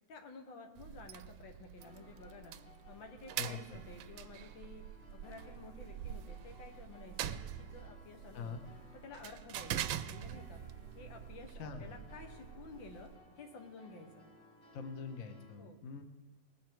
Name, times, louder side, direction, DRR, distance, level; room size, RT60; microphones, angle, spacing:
voice 1, 0.1-2.6 2.9-4.9 5.1-8.6 9.0-10.6 11.0-14.2 15.6-15.8, left 3 dB, 85° left, 4 dB, 2.0 m, -52 dB
sound 1, 0.8-13.2, right 10 dB, 85° right, 1.3 m, -45 dB
sound 2, 1.8-15.5, left 2 dB, 65° left, 5.0 m, -60 dB
voice 2, 11.6-11.9 14.7-16.0, left 5 dB, 50° left, 6 dB, 1.3 m, -43 dB
19.5 x 7.5 x 4.5 m, 1.2 s
omnidirectional pair, 2.0 m